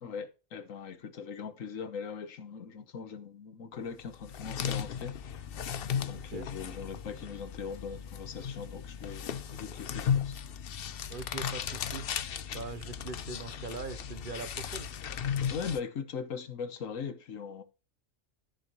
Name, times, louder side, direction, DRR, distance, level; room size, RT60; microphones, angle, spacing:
voice 1, 0.0-5.1 6.0-10.4 15.5-17.6, left 6 dB, 85° left, 1.5 m, -40 dB
sound 1, 4.0-15.8, left 8 dB, 55° left, 0.8 m, -36 dB
voice 2, 6.1-6.5 11.1-12.1 12.5-14.9, right 4 dB, 45° right, 0.9 m, -41 dB
14.0 x 6.6 x 3.1 m
omnidirectional pair, 1.3 m